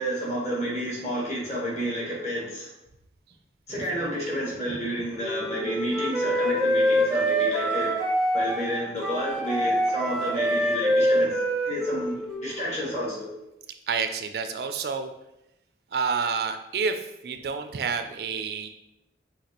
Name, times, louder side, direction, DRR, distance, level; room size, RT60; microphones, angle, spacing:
voice 1, 0.0-2.7 3.7-7.9 8.3-13.3, equal, 40° left, -4 dB, 1.4 m, -30 dB
voice 2, 3.7-4.1 13.9-15.1 15.9-18.7, right 5 dB, 60° right, 8 dB, 0.3 m, -29 dB
Wind instrument woodwind instrument, 5.2-12.6, equal, 5° right, 0.6 m, -25 dB
5.7 x 2.8 x 2.9 m, 0.89 s
head